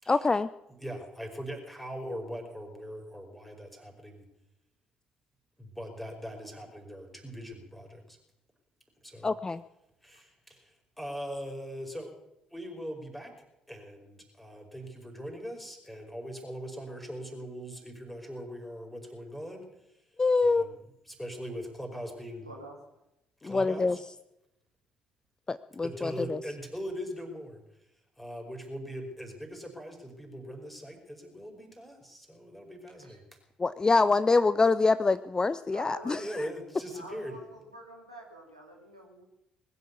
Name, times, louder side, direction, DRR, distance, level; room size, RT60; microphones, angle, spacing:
voice 1, 0.1-0.5 9.2-9.6 20.2-20.7 23.4-24.0 25.5-26.4 33.6-36.2, left 3 dB, 20° left, 15 dB, 0.5 m, -25 dB
voice 2, 0.7-4.3 5.6-8.2 9.0-9.3 10.0-12.1 12.5-13.3 13.7-19.7 20.4-20.8 21.0-22.5 23.4-24.0 25.8-27.6 28.2-33.0 36.1-37.3, equal, 5° left, 2 dB, 5.1 m, -41 dB
voice 3, 22.5-22.8 35.7-36.3 36.9-39.2, right 1 dB, 85° right, -1 dB, 2.4 m, -47 dB
20.5 x 8.3 x 8.3 m, 0.88 s
figure-of-eight pair, 45°, 3 cm